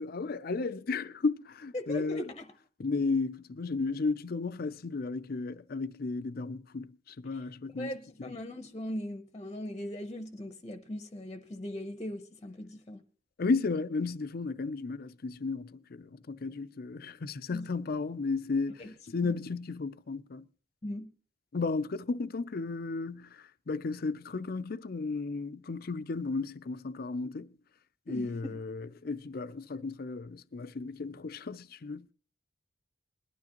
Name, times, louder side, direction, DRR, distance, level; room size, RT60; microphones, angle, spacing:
voice 1, 0.0-2.3 2.8-7.9 8.2-8.3 13.4-20.4 21.5-27.6 28.1-32.1, left 4 dB, 50° left, 0.5 m, -34 dB
voice 2, 1.7-2.5 7.3-7.4 7.8-13.0 17.5-17.7 18.8-18.9 19.2-19.4 20.8-21.1 28.1-28.6, left 1 dB, 25° left, 0.8 m, -39 dB
20.5 x 12.0 x 2.9 m
head